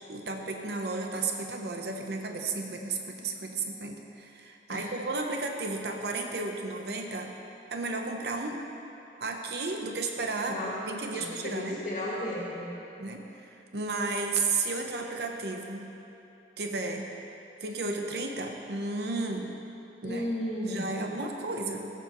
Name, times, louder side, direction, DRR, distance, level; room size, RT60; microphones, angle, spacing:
voice 1, 0.1-7.3 7.7-8.6 9.2-11.8 13.0-15.9 16.6-17.1 17.6-19.6 20.0-20.3 20.6-21.9, right 3 dB, 70° right, 3 dB, 0.8 m, -33 dB
voice 2, 11.1-12.7 20.0-20.9, left 1 dB, 45° left, -6 dB, 1.7 m, -34 dB
15.5 x 6.9 x 3.0 m, 2.8 s
head